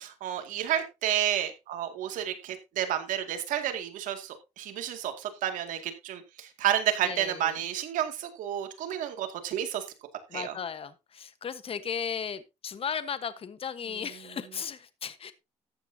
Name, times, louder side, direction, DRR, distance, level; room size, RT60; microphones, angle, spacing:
voice 1, 0.0-9.8 10.3-10.5, right 11 dB, 80° right, 7 dB, 2.2 m, -31 dB
voice 2, 7.0-7.6 10.3-15.3, left 7 dB, 45° left, 12 dB, 1.2 m, -36 dB
14.0 x 9.3 x 2.8 m, 0.26 s
cardioid pair, 80°, 13 cm